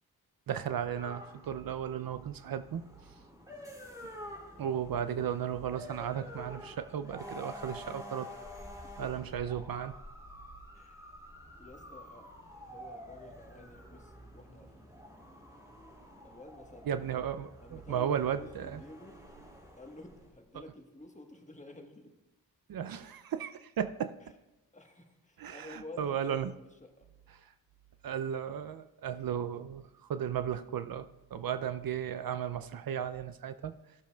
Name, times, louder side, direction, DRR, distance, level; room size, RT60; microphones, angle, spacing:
voice 1, 0.5-2.8 4.6-8.3 9.0-9.9 16.9-18.8 22.7-24.2 25.4-26.5 28.0-33.7, right 9 dB, 65° right, 12 dB, 0.5 m, -35 dB
sound 1, 0.9-20.3, equal, 10° right, 2.7 m, -49 dB
voice 2, 8.7-9.3 10.7-11.1 11.6-12.3 12.5-14.9 16.2-16.9 17.6-19.2 19.8-22.1 24.7-27.1, left 2 dB, 20° left, 4 dB, 1.3 m, -51 dB
15.0 x 6.9 x 2.3 m, 0.99 s
cardioid pair, 40°, 38 cm